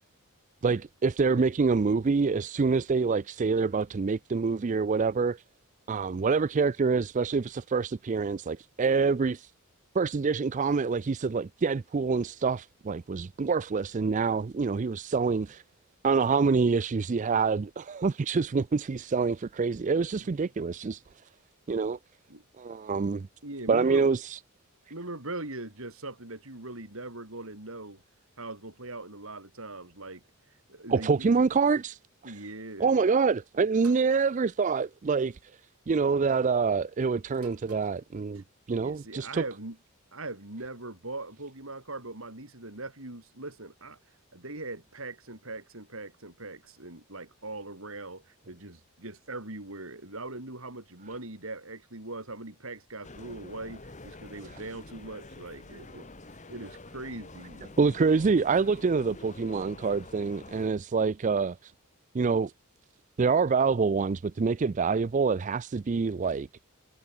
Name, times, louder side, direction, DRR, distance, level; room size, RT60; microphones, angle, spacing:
voice 1, 0.6-5.4 5.9-9.5 9.9-15.6 16.0-21.0 21.7-22.0 22.6-23.3 23.7-24.4 30.9-32.3 32.8-35.5 35.9-39.4 57.8-61.7 62.1-62.5 63.2-66.5, right 4 dB, 35° right, 0.4 m, -26 dB
voice 2, 23.4-24.1 24.9-28.0 28.4-30.2 30.7-31.3 32.2-32.9 38.3-38.4 38.8-39.8 40.1-44.0 44.3-57.7, right 2 dB, 65° right, 4.9 m, -41 dB
sound 1, 33.8-34.2 35.4-35.7 37.3-38.0, right 5 dB, 85° right, 4.2 m, -53 dB
sound 2, 53.0-60.7, left 2 dB, 35° left, 2.0 m, -47 dB
head